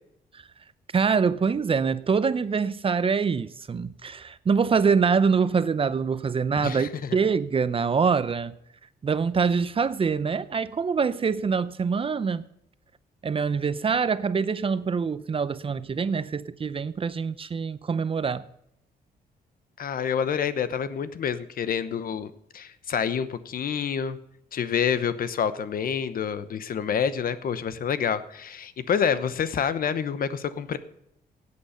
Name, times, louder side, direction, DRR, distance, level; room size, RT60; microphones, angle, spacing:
voice 1, 0.9-8.6 9.0-12.4 13.2-18.4, right 5 dB, 35° right, 0.6 m, -25 dB
voice 2, 6.6-7.2 19.8-24.2 24.5-30.8, left 7 dB, 65° left, 1.0 m, -28 dB
17.0 x 8.6 x 5.7 m
cardioid pair, 110°, 16 cm